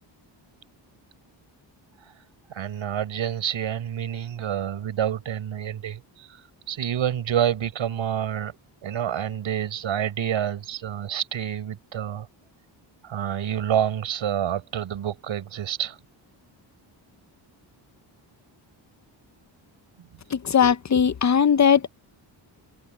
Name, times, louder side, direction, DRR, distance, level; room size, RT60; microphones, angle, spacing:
voice 1, 2.5-6.4 6.7-8.5 8.8-12.3 13.0-16.0, right 10 dB, 80° right, 5.6 m, -28 dB
voice 2, 20.3-21.9, left 7 dB, 40° left, 0.7 m, -19 dB
cardioid pair, 100°, 46 cm